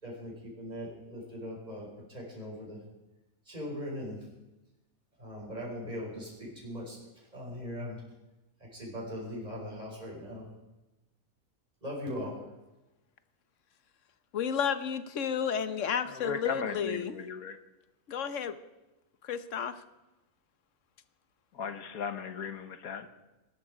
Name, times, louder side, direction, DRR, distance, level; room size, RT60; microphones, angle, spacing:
voice 1, 0.0-2.8 3.5-4.2 5.2-8.0 8.6-10.5 11.8-12.4, equal, 30° right, -4 dB, 5.2 m, -40 dB
voice 2, 14.3-17.2 18.1-18.6 19.2-19.8, left 7 dB, 60° left, 12 dB, 1.3 m, -32 dB
voice 3, 16.1-17.6 21.5-23.1, left 6 dB, 75° left, 9 dB, 1.6 m, -37 dB
20.0 x 12.0 x 5.0 m, 1.0 s
omnidirectional pair, 1.5 m